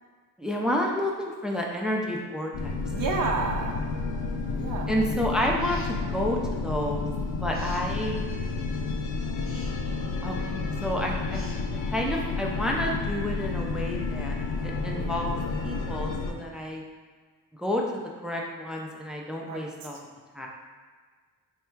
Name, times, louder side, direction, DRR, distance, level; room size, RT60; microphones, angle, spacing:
voice 1, 0.4-2.7 4.9-7.1 7.4-8.2 10.2-11.4 11.9-14.4 14.8-15.3 15.6-16.8 17.5-20.0 20.3-20.5, equal, ahead, -1 dB, 0.4 m, -30 dB
sound 1, 2.5-16.3, left 3 dB, 65° left, 0.5 m, -31 dB
voice 2, 2.9-3.8 4.5-5.0 19.4-19.6, right 4 dB, 80° right, 0 dB, 0.6 m, -30 dB
sound 2, 5.6-6.0 7.5-7.9 9.4-9.7 11.3-11.6, left 1 dB, 40° left, 0.9 m, -48 dB
3.6 x 2.2 x 4.4 m, 1.6 s
cardioid pair, 75°, 34 cm